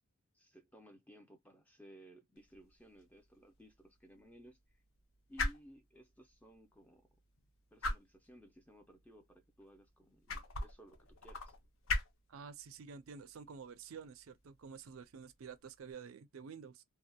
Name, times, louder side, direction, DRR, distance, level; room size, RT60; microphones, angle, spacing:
voice 1, 0.3-4.8 5.3-7.1 7.7-11.6, equal, 5° left, 0.4 m, -59 dB
sound 1, 2.4-15.9, left 2 dB, 70° left, 0.7 m, -44 dB
voice 2, 12.3-16.8, right 6 dB, 75° right, 0.4 m, -50 dB
2.7 x 2.1 x 2.2 m
head